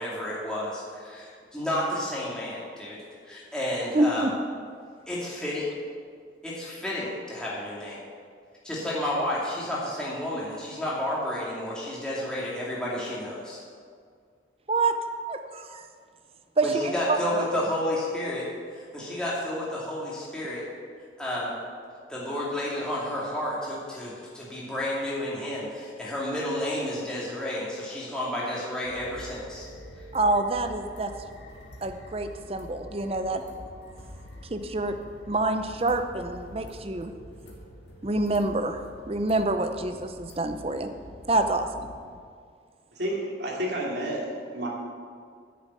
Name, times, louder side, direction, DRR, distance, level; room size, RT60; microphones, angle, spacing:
voice 1, 0.0-3.0 3.3-4.3 5.1-5.7 6.4-8.0 8.6-13.6 16.6-18.5 18.7-20.6 21.2-21.5 22.1-29.7, left 1 dB, 5° left, -7 dB, 2.4 m, -31 dB
voice 2, 3.9-4.3 14.7-14.9 15.3-15.9 16.6-17.4 30.1-31.1 31.8-33.4 34.5-34.9 35.3-37.1 38.0-38.8 39.1-40.9 41.3-41.7, right 2 dB, 30° right, 7 dB, 0.7 m, -26 dB
sound 1, 28.8-42.2, equal, 70° left, 1.8 m, -46 dB
voice 3, 42.9-44.7, right 1 dB, 65° right, -3 dB, 2.7 m, -30 dB
9.6 x 7.2 x 8.4 m, 2.1 s
head